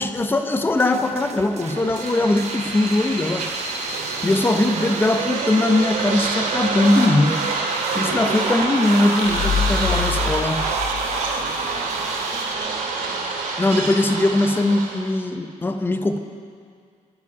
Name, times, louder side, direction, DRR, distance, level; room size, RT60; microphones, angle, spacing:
voice 1, 0.0-3.5 4.2-7.4 7.9-10.6 13.6-16.2, left 2 dB, 15° left, 6 dB, 0.9 m, -20 dB
sound 1, 0.8-12.5, right 6 dB, 50° right, 0.8 m, -37 dB
sound 2, 1.6-15.1, right 3 dB, 80° right, 2.5 m, -26 dB
voice 2, 4.1-4.4 9.8-13.4, right 1 dB, 20° right, -4 dB, 4.6 m, -43 dB
sound 3, 9.2-11.8, left 5 dB, 50° left, 1.5 m, -26 dB
12.5 x 8.2 x 9.6 m, 2.2 s
cardioid pair, 140°, 14 cm